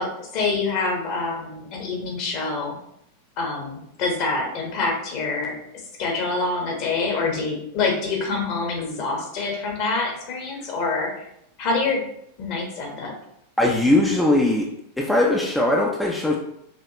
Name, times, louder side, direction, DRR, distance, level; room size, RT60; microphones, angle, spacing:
voice 1, 0.0-2.8 3.4-5.5 6.0-11.2 11.6-12.0 12.4-13.1, left 3 dB, 40° left, 0 dB, 1.2 m, -26 dB
voice 2, 13.6-14.7 15.0-16.4, left 1 dB, 5° left, -2 dB, 0.6 m, -20 dB
5.0 x 3.1 x 2.9 m, 0.76 s
figure-of-eight pair, 90°, 0 cm